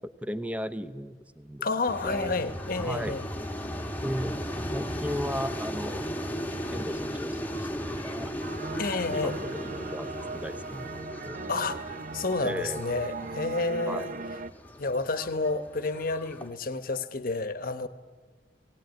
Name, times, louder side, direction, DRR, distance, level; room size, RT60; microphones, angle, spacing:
voice 1, 0.0-1.7 2.8-3.2 4.0-4.3 4.6-6.0 6.7-8.3 9.1-11.4 12.4-12.8 13.9-14.1, equal, 10° right, 0.7 m, -36 dB
voice 2, 1.6-3.3 8.8-9.4 11.5-14.1 14.8-17.9, left 3 dB, 55° left, 1.0 m, -30 dB
sound 1, 1.9-16.5, equal, 10° left, 1.2 m, -36 dB
sound 2, 8.4-14.5, right 4 dB, 50° right, 0.5 m, -39 dB
18.5 x 18.0 x 9.3 m
head